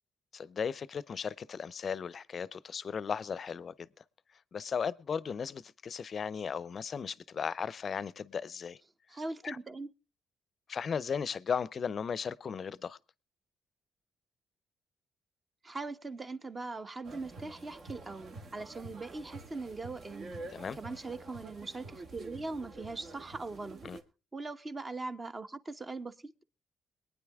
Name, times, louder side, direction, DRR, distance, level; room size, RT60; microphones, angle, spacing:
voice 1, 0.3-4.0 4.5-8.8 9.4-9.6 10.7-13.0 20.5-20.8 23.8-24.0, left 6 dB, 45° left, 0.6 m, -36 dB
voice 2, 9.1-9.9 15.6-20.4 20.8-23.8 24.3-26.4, right 3 dB, 30° right, 1.0 m, -41 dB
sound 1, 17.0-24.0, right 2 dB, 60° right, 1.9 m, -48 dB
22.0 x 9.4 x 3.5 m
cardioid pair, 90°, 0 cm